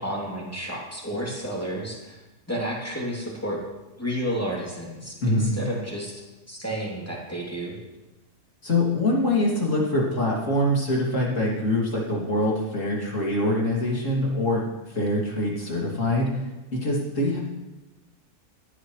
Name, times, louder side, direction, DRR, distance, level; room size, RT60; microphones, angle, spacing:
voice 1, 0.0-2.2 2.5-3.6 4.0-7.8, equal, 10° left, -4 dB, 2.9 m, -31 dB
voice 2, 5.2-5.5 8.6-14.6 14.9-16.3 16.7-17.4, left 1 dB, 55° left, -3 dB, 3.1 m, -24 dB
16.5 x 11.5 x 3.2 m, 1.1 s
omnidirectional pair, 1.6 m